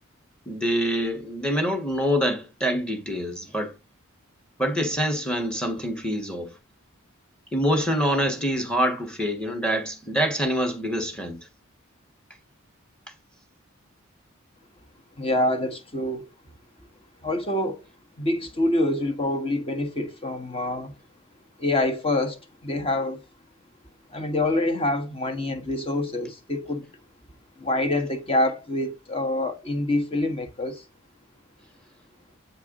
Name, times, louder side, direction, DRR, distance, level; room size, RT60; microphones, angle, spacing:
voice 1, 0.5-3.7 4.6-6.5 7.5-11.4, equal, 5° left, 1.4 m, -25 dB
voice 2, 15.2-16.2 17.2-17.8 18.2-20.9 21.6-23.2 24.1-26.9 27.6-30.8, left 1 dB, 25° left, 1.3 m, -26 dB
8.1 x 4.7 x 3.7 m
head